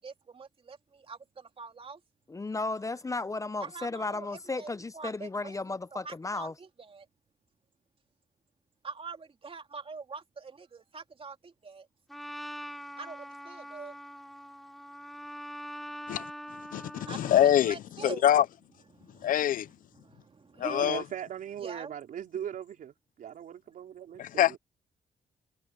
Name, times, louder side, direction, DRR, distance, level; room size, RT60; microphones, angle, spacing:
voice 1, 0.0-2.0 3.6-5.6 5.9-7.0 8.8-11.9 13.0-13.9 17.1-18.2 19.1-19.3 19.9-20.9 21.6-21.9, right 4 dB, 40° right, 3.0 m, -44 dB
voice 2, 2.3-6.5, left 3 dB, 20° left, 0.7 m, -34 dB
Trumpet, 12.1-17.6, equal, ahead, 4.2 m, -43 dB
voice 3, 16.7-17.7 18.0-18.4 19.2-19.7 20.6-21.0 24.2-24.6, left 11 dB, 75° left, 0.8 m, -24 dB
voice 4, 20.8-24.6, right 9 dB, 70° right, 4.5 m, -39 dB
cardioid pair, 65°, 14 cm